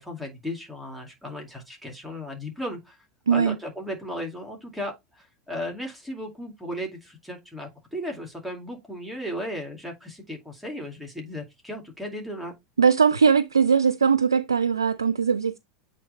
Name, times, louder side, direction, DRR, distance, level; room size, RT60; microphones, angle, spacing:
voice 1, 0.0-3.0 3.3-12.5, equal, ahead, 2.3 m, -35 dB
voice 2, 3.3-3.6 12.8-15.6, right 6 dB, 85° right, 0.3 m, -20 dB
8.3 x 3.1 x 3.9 m
hypercardioid pair, 85°, 2 cm